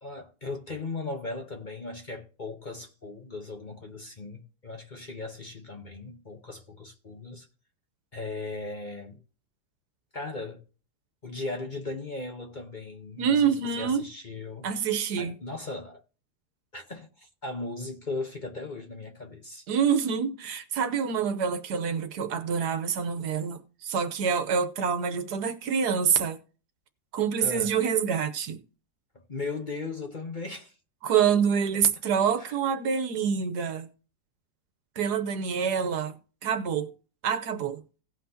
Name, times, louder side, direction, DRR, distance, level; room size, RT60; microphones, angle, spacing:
voice 1, 0.0-7.5 8.1-9.2 10.1-10.6 11.2-14.7 15.2-16.0 16.7-19.7 27.4-27.7 29.3-30.7 32.4-32.5, left 3 dB, 35° left, 1.0 m, -37 dB
voice 2, 13.2-14.1 14.6-15.4 19.7-26.4 27.1-28.6 31.0-33.9 35.0-36.9 37.2-37.8, right 7 dB, 75° right, 1.5 m, -26 dB
17.0 x 5.8 x 2.8 m
omnidirectional pair, 1.8 m